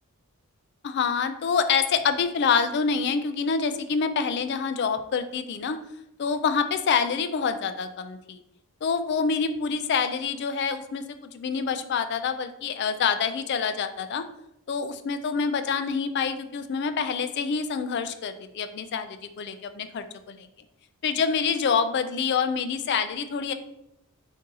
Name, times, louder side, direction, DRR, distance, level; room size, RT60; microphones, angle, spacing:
voice 1, 0.8-5.8 6.2-8.4 8.8-14.2 14.7-20.5 21.0-23.5, left 6 dB, 50° left, 10 dB, 0.3 m, -26 dB
4.0 x 2.6 x 3.7 m, 0.85 s
head